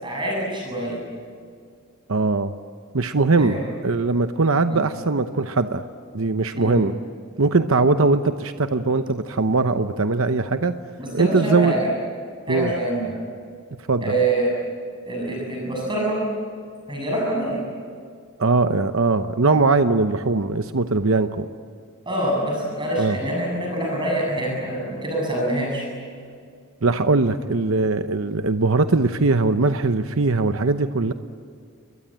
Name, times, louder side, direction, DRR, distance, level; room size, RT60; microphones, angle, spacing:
voice 1, 0.0-1.0 3.4-3.6 4.7-4.8 6.5-6.8 11.0-11.9 12.5-13.1 14.0-14.5 15.1-16.2 16.9-17.6 22.1-25.9, right 1 dB, 20° right, -2 dB, 7.5 m, -25 dB
voice 2, 2.1-2.5 2.9-5.8 6.1-6.9 7.4-10.8 11.1-11.8 12.5-12.7 13.9-14.1 18.4-21.5 23.0-23.2 26.8-31.1, right 3 dB, 75° right, 9 dB, 0.9 m, -20 dB
29.0 x 22.5 x 8.8 m, 2.2 s
head